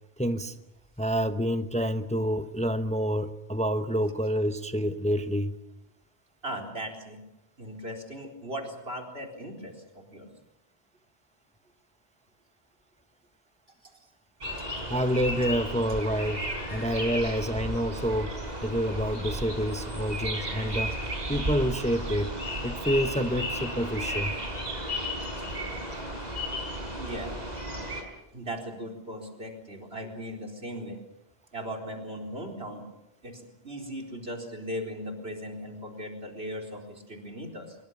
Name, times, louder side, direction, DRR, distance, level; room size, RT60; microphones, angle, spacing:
voice 1, 0.2-0.6 1.0-5.6 14.9-21.0 21.3-22.3 22.6-24.4, equal, 5° left, 0.9 m, -28 dB
voice 2, 6.4-7.2 7.6-10.3 13.8-13.9 26.9-27.4 28.3-31.0 31.5-32.9 33.2-37.8, equal, 80° right, 4.5 m, -38 dB
sound 1, 14.4-28.0, equal, 45° right, 5.3 m, -34 dB
25.5 x 23.0 x 7.1 m
omnidirectional pair, 1.0 m